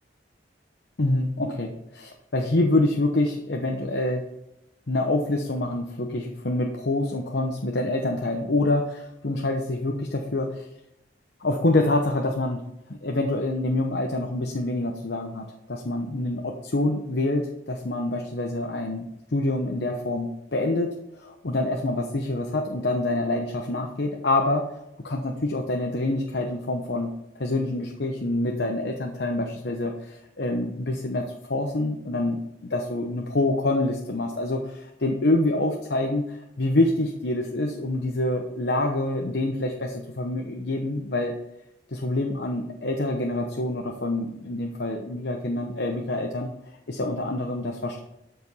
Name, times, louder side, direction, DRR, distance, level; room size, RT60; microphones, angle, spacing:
voice 1, 1.0-4.2 4.9-10.7 11.4-12.6 12.9-20.9 21.1-24.7 25.0-27.1 27.4-32.4 32.7-41.3 41.9-46.5 46.9-48.0, left 2 dB, 70° left, 2 dB, 0.9 m, -26 dB
13.0 x 5.1 x 5.5 m, 0.86 s
head